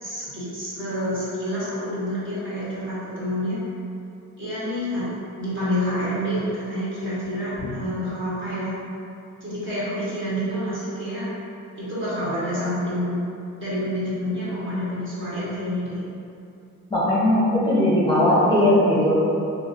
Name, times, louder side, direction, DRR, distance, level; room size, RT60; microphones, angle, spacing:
voice 1, 0.0-3.6 4.4-5.0 5.4-8.7 9.4-11.2 11.8-13.2 13.6-16.0, equal, 40° right, -10 dB, 1.4 m, -28 dB
voice 2, 16.9-19.1, left 1 dB, 15° left, -9 dB, 0.7 m, -18 dB
2.9 x 2.8 x 2.5 m, 2.7 s
cardioid pair, 90°, 30 cm